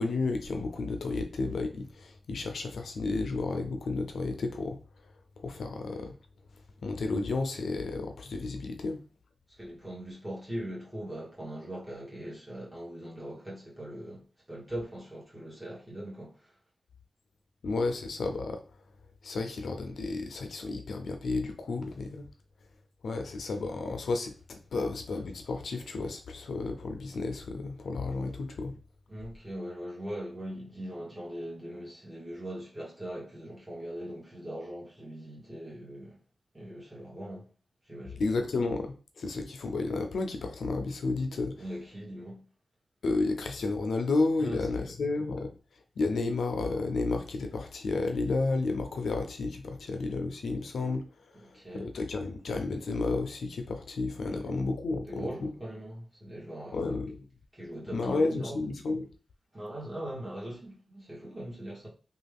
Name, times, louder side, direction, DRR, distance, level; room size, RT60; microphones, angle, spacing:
voice 1, 0.0-4.8 5.4-6.1 6.8-9.0 17.6-18.6 19.2-22.3 23.0-28.7 38.2-41.5 43.0-45.5 46.0-51.1 51.7-55.5 56.7-57.3 57.9-59.1, left 3 dB, 85° left, 0.4 m, -32 dB
voice 2, 9.6-16.5 29.1-36.2 36.5-37.5 37.9-38.2 41.6-42.4 44.4-44.9 51.3-51.9 54.3-54.6 55.0-57.0 57.5-58.6 59.5-61.9, right 1 dB, 15° right, 1.5 m, -41 dB
3.1 x 2.3 x 3.4 m
wide cardioid pair, 95°, 0 cm